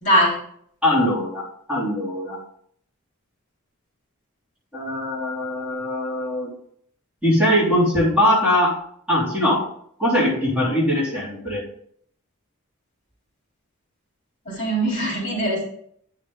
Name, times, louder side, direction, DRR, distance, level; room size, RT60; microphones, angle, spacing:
voice 1, 0.0-0.4 14.5-15.6, right 1 dB, 40° left, -3 dB, 3.6 m, -21 dB
voice 2, 0.8-2.4 4.7-6.5 7.2-8.8 9.1-9.7 10.0-11.6, left 1 dB, 5° right, -7 dB, 3.5 m, -21 dB
9.4 x 6.5 x 3.8 m, 0.63 s
head